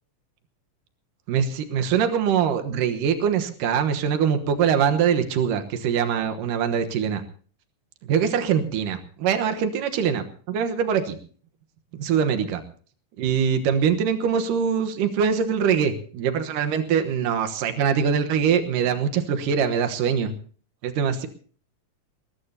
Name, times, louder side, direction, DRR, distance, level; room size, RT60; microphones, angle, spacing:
voice 1, 1.3-7.2 8.1-11.2 11.9-12.6 13.2-20.3 20.8-21.3, right 7 dB, 85° right, 7 dB, 2.8 m, -23 dB
20.5 x 20.0 x 2.8 m, 0.43 s
omnidirectional pair, 3.7 m